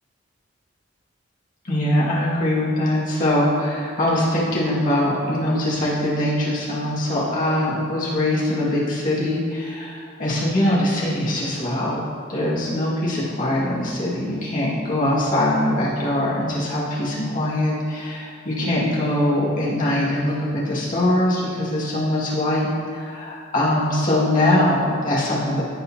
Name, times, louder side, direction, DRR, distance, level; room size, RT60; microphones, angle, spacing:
voice 1, 1.6-12.0 12.3-25.6, left 1 dB, 45° left, -7 dB, 2.2 m, -22 dB
15.0 x 5.2 x 2.9 m, 2.3 s
head